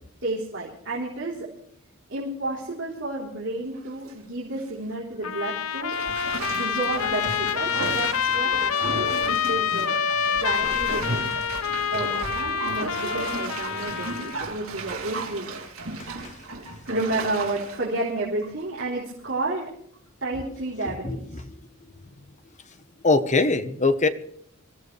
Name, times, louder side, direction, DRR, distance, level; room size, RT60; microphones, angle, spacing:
voice 1, 0.2-1.5 2.1-6.0 6.5-11.3 11.9-15.5 16.9-19.7 20.2-21.4, right 2 dB, 60° right, -4 dB, 3.7 m, -31 dB
Bathtub (filling or washing), 3.7-4.1 4.6-4.7 5.9-19.0 19.4-19.5, right 3 dB, 90° right, 3.2 m, -34 dB
Trumpet, 5.2-14.4, left 7 dB, 80° left, 0.8 m, -27 dB
voice 2, 20.8-21.4 23.0-24.1, left 3 dB, 35° left, 10 dB, 1.1 m, -22 dB
25.0 x 15.5 x 3.4 m, 0.67 s
head